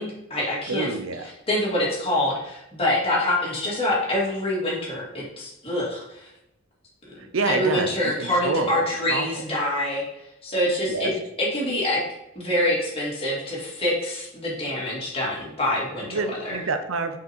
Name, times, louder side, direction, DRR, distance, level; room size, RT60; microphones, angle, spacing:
voice 1, 0.0-0.9 1.2-6.3 7.4-10.0 10.4-11.1 11.4-12.0 12.3-16.6, left 1 dB, 30° left, -6 dB, 2.7 m, -25 dB
voice 2, 0.7-1.3 7.3-8.8 9.1-9.3 10.9-11.1 16.0-17.2, right 3 dB, 75° right, 8 dB, 0.7 m, -27 dB
5.7 x 5.1 x 4.5 m, 0.86 s
head